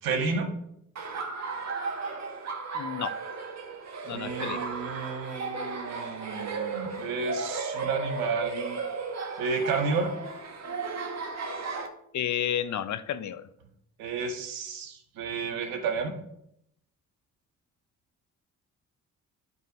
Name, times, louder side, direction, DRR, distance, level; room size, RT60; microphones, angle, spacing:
voice 1, 0.0-0.5 4.1-8.8 9.4-10.1 14.0-16.1, right 4 dB, 85° right, 3 dB, 1.5 m, -31 dB
Laughter, 1.0-11.9, right 4 dB, 50° right, 1.5 m, -35 dB
voice 2, 2.7-3.2 4.1-4.7 12.1-13.5, left 10 dB, 60° left, 13 dB, 0.7 m, -31 dB
9.3 x 4.6 x 4.6 m, 0.75 s
supercardioid pair, 65°, 34 cm